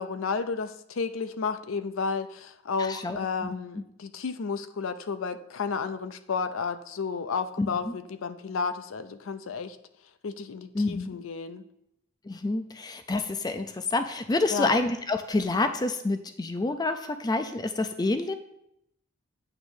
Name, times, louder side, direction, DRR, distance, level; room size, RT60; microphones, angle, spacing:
voice 1, 0.0-9.8 10.2-11.7 14.5-14.8, left 5 dB, 70° left, 11 dB, 0.5 m, -32 dB
voice 2, 2.8-3.5 7.6-7.9 10.7-11.1 12.2-18.3, left 2 dB, 20° left, 8 dB, 0.4 m, -28 dB
8.8 x 3.1 x 6.3 m, 0.77 s
head